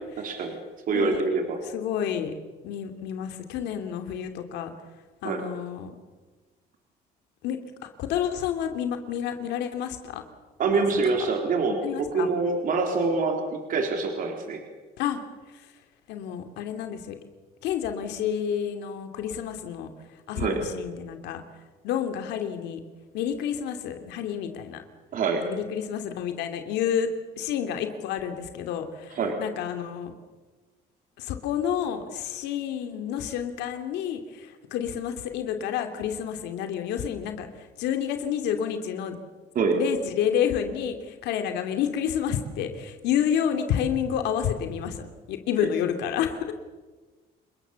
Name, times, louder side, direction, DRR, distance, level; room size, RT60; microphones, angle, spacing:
voice 1, 0.2-0.5 0.9-1.6 5.2-5.4 10.6-13.4 13.7-14.6 20.4-20.6 25.1-25.4 29.2-29.4 39.6-39.8, right 4 dB, 55° right, 3 dB, 3.7 m, -25 dB
voice 2, 1.6-2.3 2.6-4.7 5.2-5.9 7.4-7.6 8.0-10.2 10.7-10.9 11.8-12.3 15.0-15.2 16.1-17.1 17.6-19.9 20.3-21.4 21.8-22.8 23.1-24.8 25.4-27.1 27.4-30.1 31.2-37.5 37.8-39.1 39.8-46.5, left 9 dB, 90° left, 6 dB, 2.6 m, -29 dB
29.5 x 20.5 x 7.0 m, 1.3 s
cardioid pair, 110°, 17 cm